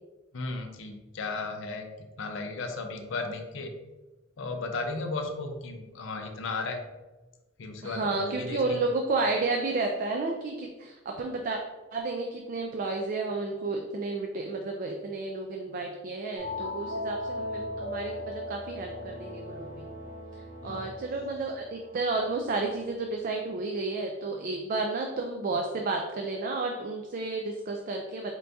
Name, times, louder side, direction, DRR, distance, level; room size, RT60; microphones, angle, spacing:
voice 1, 0.3-3.7 4.4-6.8 7.6-8.8 20.6-20.9, left 3 dB, 70° left, 4 dB, 0.5 m, -35 dB
voice 2, 7.8-11.6 11.9-19.9 20.6-28.3, right 3 dB, 45° right, 2 dB, 0.4 m, -31 dB
sound 1, 16.4-22.8, left 1 dB, 70° right, 1.2 m, -38 dB
4.5 x 2.6 x 3.4 m, 1.2 s
head